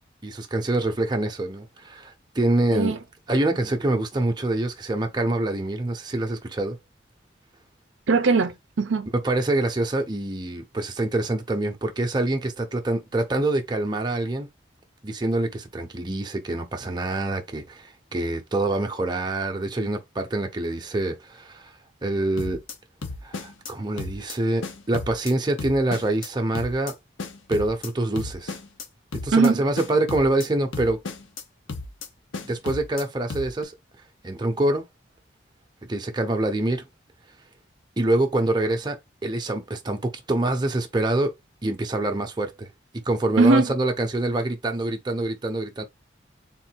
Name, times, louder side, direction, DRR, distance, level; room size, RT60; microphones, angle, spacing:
voice 1, 0.2-2.9 3.3-6.8 9.2-14.5 15.0-21.7 22.0-22.6 23.2-26.9 27.5-28.6 29.2-31.0 32.4-33.7 34.2-34.9 35.9-36.8 38.0-41.3 41.6-42.7 43.1-45.8, right 2 dB, 20° right, 0.7 m, -25 dB
voice 2, 8.1-9.1 29.3-29.6 43.4-43.7, right 3 dB, 80° right, 0.6 m, -20 dB
sound 1, 22.4-22.7 23.0-23.7 24.0-24.3 24.6-25.3 25.6-26.3 26.5-26.9 27.2-27.9 28.2-28.8 29.1-29.5 29.8-30.5 30.7-31.4 31.7-32.1 32.3-33.0 33.3-33.6, left 3 dB, 80° left, 0.8 m, -34 dB
3.7 x 2.6 x 4.4 m
head